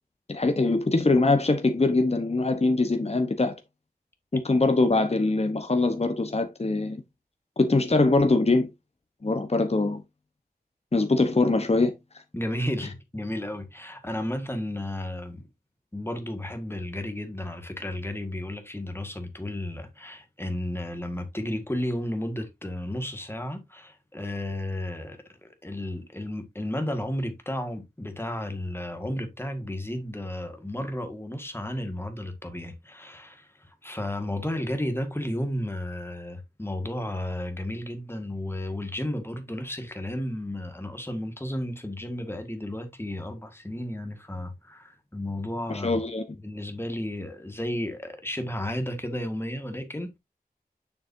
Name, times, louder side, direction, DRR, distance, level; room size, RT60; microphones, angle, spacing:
voice 1, 0.3-3.5 4.3-7.0 7.6-8.7 9.2-10.0 10.9-11.9 45.7-46.2, left 3 dB, 40° left, 1.0 m, -23 dB
voice 2, 12.3-15.4 15.9-46.0 46.4-50.2, left 1 dB, 15° left, 1.8 m, -33 dB
7.3 x 6.4 x 2.7 m
wide cardioid pair, 60°, 16 cm